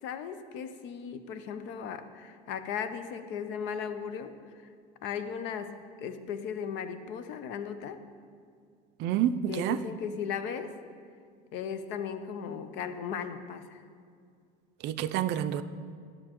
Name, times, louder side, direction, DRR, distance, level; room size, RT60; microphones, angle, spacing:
voice 1, 0.0-4.4 5.0-8.0 9.5-10.8 11.5-13.8, left 7 dB, 65° left, 10 dB, 0.6 m, -37 dB
voice 2, 9.0-9.8 14.8-15.6, right 10 dB, 60° right, 11 dB, 0.4 m, -28 dB
11.0 x 6.6 x 3.0 m, 2.3 s
supercardioid pair, 100°, 20 cm